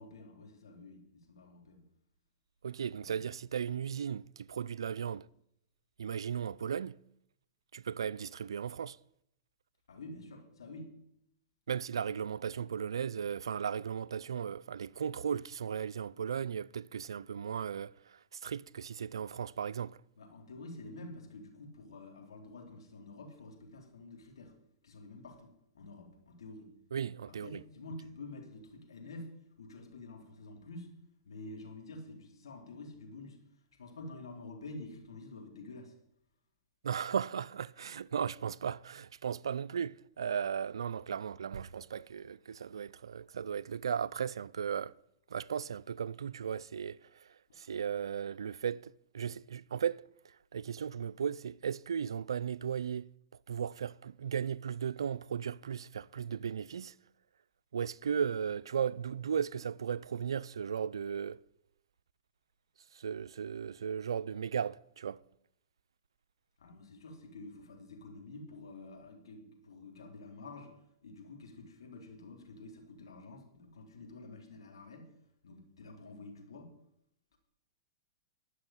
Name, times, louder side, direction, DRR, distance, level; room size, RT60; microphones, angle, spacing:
voice 1, 0.0-1.8 3.0-3.1 9.9-10.9 20.2-24.5 24.8-26.7 27.3-31.0 31.3-35.9 66.6-70.7 71.0-75.1 75.4-76.7 77.3-77.4, left 2 dB, 85° left, 3.1 m, -49 dB
voice 2, 2.6-5.3 6.0-7.0 7.7-9.0 11.7-20.0 26.9-27.6 36.8-44.9 45.3-53.1 53.5-56.9 57.7-61.4 62.9-65.2, right 7 dB, 90° right, 0.4 m, -36 dB
11.5 x 6.3 x 9.0 m
hypercardioid pair, 130°, 2 cm